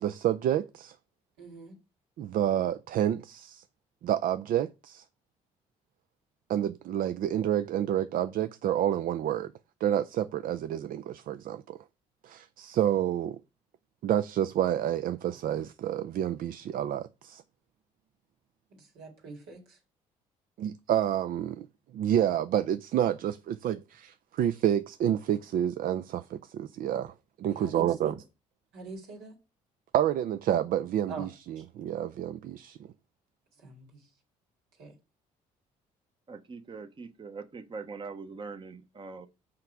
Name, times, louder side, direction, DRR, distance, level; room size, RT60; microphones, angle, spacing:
voice 1, 0.0-0.9 2.2-3.6 4.0-5.0 6.5-9.5 9.8-11.8 12.2-13.4 14.0-17.4 20.6-21.7 21.9-28.2 29.9-32.9, right 11 dB, 60° right, 0.5 m, -29 dB
voice 2, 1.4-1.8 18.7-19.8 27.5-28.1 28.7-29.3 31.1-31.3 31.6-31.7 33.6-34.0 34.8-34.9, right 3 dB, 85° right, 2.4 m, -44 dB
voice 3, 36.3-39.3, right 4 dB, 30° right, 0.8 m, -42 dB
5.8 x 4.9 x 4.6 m
supercardioid pair, 65°, 16 cm